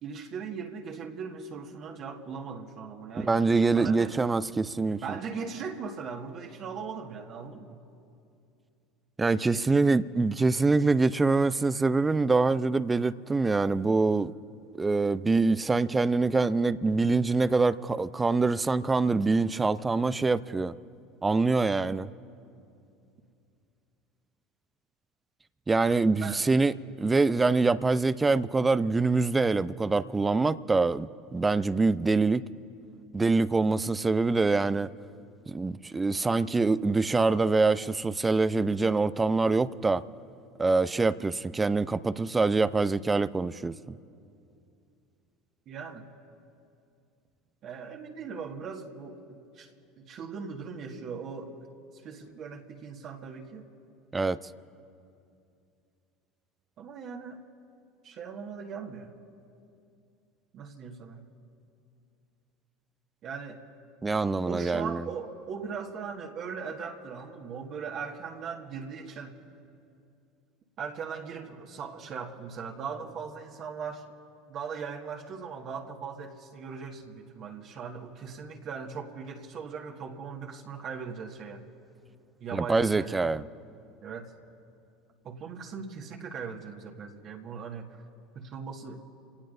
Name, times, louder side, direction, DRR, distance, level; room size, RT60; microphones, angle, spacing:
voice 1, 0.0-4.1 5.0-7.8 9.5-9.9 26.2-26.4 45.7-46.1 47.6-49.7 50.0-51.5 52.0-53.7 56.8-57.4 58.0-59.1 60.5-61.2 63.2-63.6 64.5-69.5 70.8-74.0 74.5-81.6 82.4-83.2 84.0-84.3 85.2-88.0 88.4-89.0, right 6 dB, 50° right, 1.7 m, -39 dB
voice 2, 3.2-5.0 9.2-14.3 14.8-20.8 21.2-22.1 25.7-32.4 33.1-34.9 35.5-40.0 40.6-44.0 54.1-54.4 64.0-65.0 82.5-83.4, right 3 dB, 20° right, 0.6 m, -25 dB
29.5 x 18.0 x 2.7 m
hypercardioid pair, 75°, 0 cm